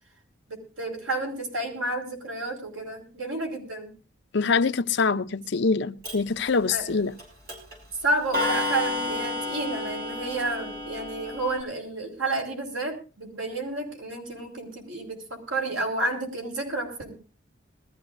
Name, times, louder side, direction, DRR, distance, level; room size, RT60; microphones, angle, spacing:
voice 1, 0.5-3.9 6.7-7.0 8.0-17.1, right 2 dB, 80° right, 5.1 m, -31 dB
voice 2, 4.3-7.1, left 4 dB, 60° left, 0.7 m, -24 dB
Clock, 6.0-6.1 7.2-7.3 7.5-7.8 8.3-11.6, left 2 dB, 50° right, 6.4 m, -30 dB
22.0 x 14.0 x 2.6 m
head